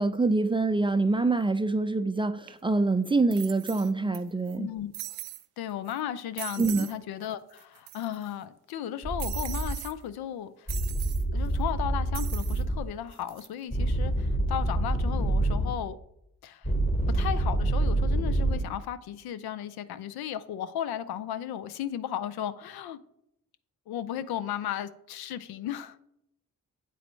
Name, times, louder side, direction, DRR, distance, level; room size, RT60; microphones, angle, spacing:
voice 1, 0.0-4.7 6.6-6.9, right 3 dB, 15° right, 0.4 m, -25 dB
sound 1, 2.5-2.6 3.3-4.2 4.5-4.6 4.9-5.5 5.9-6.0 6.4-7.0 7.2-7.3 7.6-8.3 9.2-9.9 10.7-11.2 12.1-12.6 13.1-13.5, right 16 dB, 80° right, 0.5 m, -40 dB
voice 2, 4.6-4.9 5.6-10.7 11.3-16.0 16.4-16.7 17.1-23.0 23.9-26.0, left 10 dB, 75° left, 0.5 m, -35 dB
sound 2, 9.0-9.7 10.7-12.8 13.7-15.7 16.6-18.6, right 2 dB, 15° left, 1.1 m, -27 dB
8.3 x 4.2 x 3.0 m
supercardioid pair, 40°, 38 cm